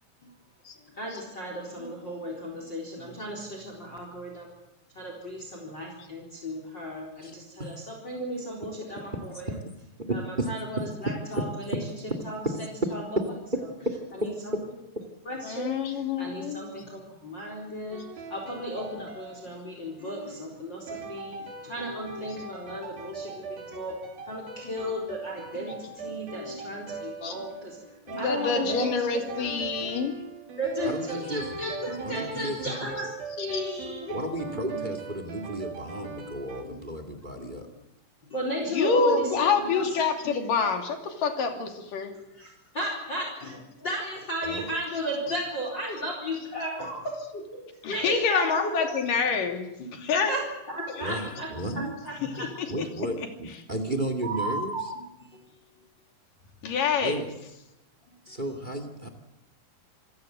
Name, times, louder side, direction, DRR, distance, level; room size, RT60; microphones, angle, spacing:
voice 1, 0.9-4.5 4.9-9.6 10.1-11.8 12.2-13.0 14.2-14.5 15.3-24.0 24.3-29.5 29.9-30.0 30.6-34.2 34.5-34.8 36.3-36.9 37.4-37.5 38.3-40.0 40.2-40.4 42.3-47.6 47.9-48.7 49.8-52.5 53.1-53.2 53.9-55.5 58.3-58.4, equal, 30° left, 1 dB, 4.6 m, -35 dB
voice 2, 10.1-10.5 13.1-13.2 13.5-13.6 30.8-31.6 32.0-32.6 34.1-37.7 44.4-44.6 51.0-51.9 52.7-54.7 57.0-57.3 58.2-59.1, right 1 dB, 15° right, 9 dB, 1.7 m, -33 dB
voice 3, 15.4-16.6 27.2-27.3 28.1-30.1 33.5-33.6 38.7-42.1 47.8-49.7 50.0-50.3 52.4-52.5 52.8-52.9 56.6-57.2, left 5 dB, 65° left, 5 dB, 4.2 m, -26 dB
sound 1, 17.9-20.1 20.9-36.6, right 3 dB, 75° right, 5.1 m, -40 dB
27.5 x 16.5 x 7.8 m, 0.92 s
omnidirectional pair, 4.2 m